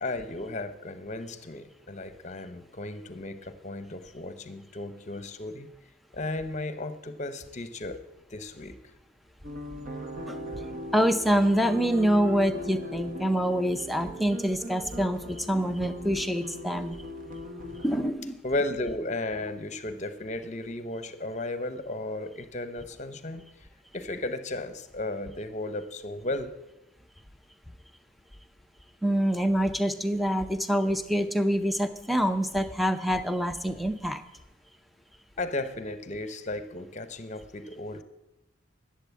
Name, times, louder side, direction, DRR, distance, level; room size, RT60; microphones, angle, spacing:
voice 1, 0.0-5.7 6.1-8.0 8.3-8.8 18.4-23.4 23.9-26.5 35.4-38.0, left 2 dB, 35° left, 11 dB, 0.8 m, -34 dB
sound 1, 9.4-18.1, left 1 dB, 45° right, 1.2 m, -39 dB
voice 2, 10.9-17.0 17.8-18.4 29.0-34.2, equal, ahead, 9 dB, 0.6 m, -26 dB
12.0 x 7.7 x 8.3 m, 0.95 s
head